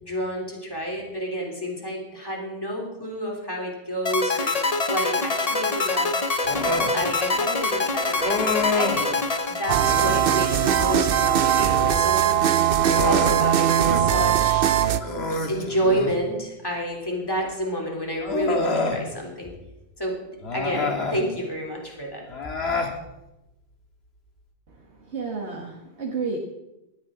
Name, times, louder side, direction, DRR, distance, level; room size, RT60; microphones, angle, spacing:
voice 1, 0.0-4.5 4.9-6.1 6.8-9.1 9.5-12.3 13.0-14.7 15.2-19.5 20.0-20.2 20.5-22.2, equal, 20° left, -1 dB, 3.4 m, -29 dB
sound 1, 4.1-10.4, left 3 dB, 35° left, 1.0 m, -25 dB
Human voice, 6.4-7.0 8.2-9.1 9.8-10.3 12.3-14.1 14.4-14.5 15.0-16.2 17.4-17.5 18.2-19.0 20.4-21.2 22.3-23.0, left 3 dB, 70° left, 2.0 m, -27 dB
sound 2, 9.7-15.0, right 10 dB, 60° right, 0.8 m, -20 dB
voice 2, 25.1-26.4, right 4 dB, 85° right, -1 dB, 1.8 m, -31 dB
18.5 x 14.0 x 3.8 m, 0.95 s
omnidirectional pair, 1.1 m